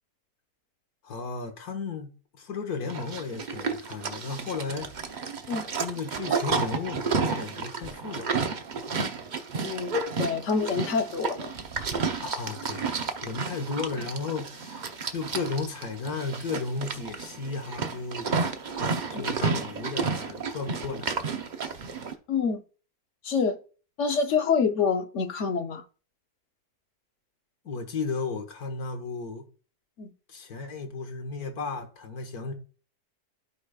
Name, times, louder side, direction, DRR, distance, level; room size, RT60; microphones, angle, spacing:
voice 1, 1.0-5.0 5.8-8.4 12.2-12.9 13.2-18.3 19.1-21.2 27.6-29.5 30.3-32.5, left 4 dB, 75° left, 1.8 m, -34 dB
Livestock farm animals working animals, 2.9-22.1, right 4 dB, 45° right, 0.6 m, -31 dB
voice 2, 9.6-9.9 10.2-11.5 19.1-19.3 22.3-22.6 23.2-23.6 24.0-25.8 30.0-30.1, left 5 dB, 60° left, 1.0 m, -26 dB
14.5 x 5.0 x 2.3 m
omnidirectional pair, 1.6 m